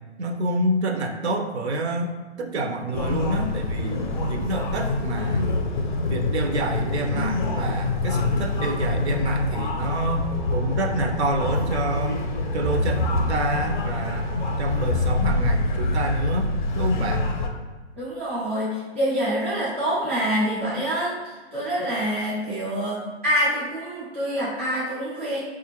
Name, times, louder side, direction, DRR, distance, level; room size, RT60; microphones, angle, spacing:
voice 1, 0.2-2.1 2.4-4.0 4.3-5.5 6.1-12.2 12.5-14.3 14.6-17.3, right 1 dB, 70° right, 5 dB, 0.7 m, -27 dB
sound 1, 2.9-17.5, left 2 dB, 45° left, 0.5 m, -25 dB
voice 2, 18.0-25.4, equal, 10° right, -12 dB, 0.3 m, -26 dB
4.1 x 2.5 x 2.9 m, 1.3 s
hypercardioid pair, 160°, 34 cm